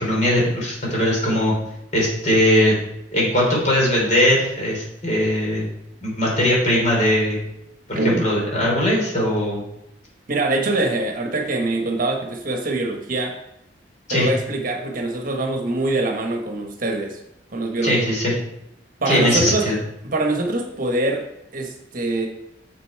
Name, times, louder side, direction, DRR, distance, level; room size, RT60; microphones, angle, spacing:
voice 1, 0.0-1.6 1.9-2.7 3.1-5.7 6.0-7.4 7.9-9.6 14.1-14.3 17.8-18.3 19.1-19.7, left 1 dB, 45° left, -4 dB, 3.6 m, -20 dB
voice 2, 7.9-8.3 10.3-13.4 14.1-17.2 17.5-18.0 19.0-19.7 20.0-21.3 21.5-22.3, right 2 dB, 50° right, 3 dB, 1.2 m, -23 dB
7.2 x 6.8 x 4.6 m, 0.82 s
head